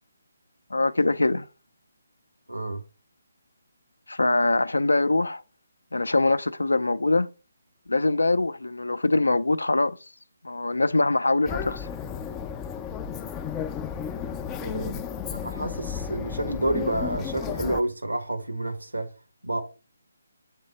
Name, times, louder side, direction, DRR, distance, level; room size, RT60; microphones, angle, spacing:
voice 1, 0.7-1.5 4.1-5.4 5.9-7.3 7.9-10.0 10.4-11.9, left 2 dB, 75° left, 0.5 m, -23 dB
voice 2, 2.5-2.8 14.6-14.9 15.3-19.1 19.4-19.6, right 1 dB, 80° right, 1.2 m, -29 dB
sound 1, 11.5-17.8, left 7 dB, 15° left, 0.3 m, -33 dB
7.4 x 3.3 x 4.0 m
figure-of-eight pair, 145°, 0 cm